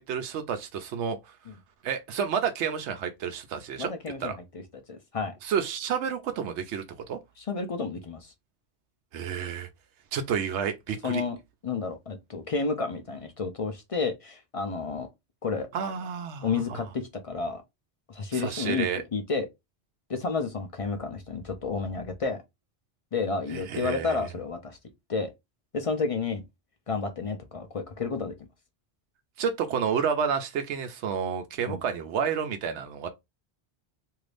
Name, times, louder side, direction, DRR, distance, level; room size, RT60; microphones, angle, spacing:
voice 1, 0.0-1.3 1.8-3.9 4.2-4.4 5.4-7.2 9.1-9.7 10.1-11.2 15.7-16.8 18.3-19.0 23.5-24.2 29.4-33.1, right 7 dB, 90° right, 0.9 m, -30 dB
voice 2, 3.8-4.6 4.9-5.4 7.4-8.3 11.0-11.4 11.6-15.1 15.4-15.7 16.4-17.6 18.1-19.5 20.1-22.4 23.1-24.8 25.1-25.3 25.7-26.4 26.9-28.4 31.7-31.8, left 4 dB, 45° left, 0.4 m, -31 dB
2.7 x 2.5 x 3.2 m
omnidirectional pair, 1.1 m